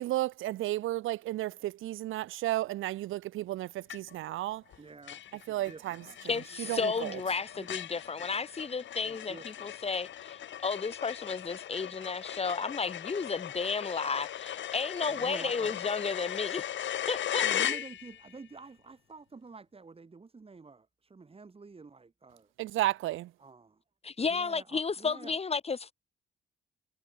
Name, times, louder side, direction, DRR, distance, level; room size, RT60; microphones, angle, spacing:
voice 1, 0.0-4.6 5.5-6.0 6.7-7.1 22.6-23.3, right 15 dB, 85° right, 2.2 m, -33 dB
sound 1, 3.9-4.3 4.7-4.8 5.1-18.3, left 11 dB, 70° left, 5.1 m, -38 dB
voice 2, 4.8-6.2 6.6-7.1 7.6-7.8 9.0-9.5 15.1-15.8 17.4-22.5 23.4-23.8 24.3-25.4, right 4 dB, 30° right, 7.5 m, -49 dB
voice 3, 6.3-16.7 17.1-17.8 24.0-25.9, left 5 dB, 30° left, 2.3 m, -33 dB
cardioid pair, 90°, 20 cm